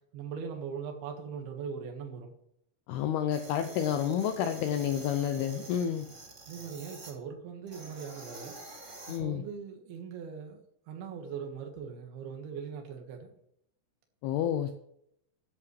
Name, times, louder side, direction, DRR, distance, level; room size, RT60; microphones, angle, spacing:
voice 1, 0.1-2.3 6.5-8.6 9.1-13.4, right 6 dB, 65° right, 3 dB, 3.3 m, -40 dB
voice 2, 2.9-6.1 9.1-9.4 14.2-14.7, left 9 dB, 80° left, 7 dB, 2.3 m, -30 dB
sound 1, 3.3-7.1 7.7-9.2, right 2 dB, 25° right, 1.5 m, -48 dB
16.0 x 11.0 x 3.3 m, 0.73 s
omnidirectional pair, 5.3 m